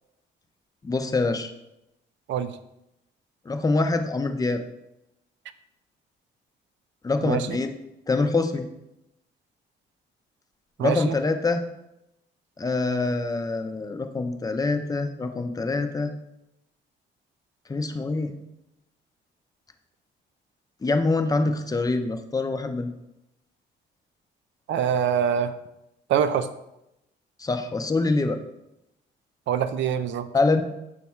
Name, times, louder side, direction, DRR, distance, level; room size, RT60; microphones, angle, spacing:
voice 1, 0.8-1.5 3.5-4.6 7.0-7.7 8.1-8.7 10.8-11.6 12.6-16.1 17.7-18.3 20.8-22.9 27.4-28.4 30.3-30.6, left 3 dB, 20° left, 7 dB, 0.5 m, -25 dB
voice 2, 10.8-11.1 24.7-25.5 26.1-26.5 29.5-30.3, right 8 dB, 70° right, 11 dB, 0.4 m, -24 dB
5.3 x 2.4 x 4.2 m, 0.87 s
cardioid pair, 90°, 20 cm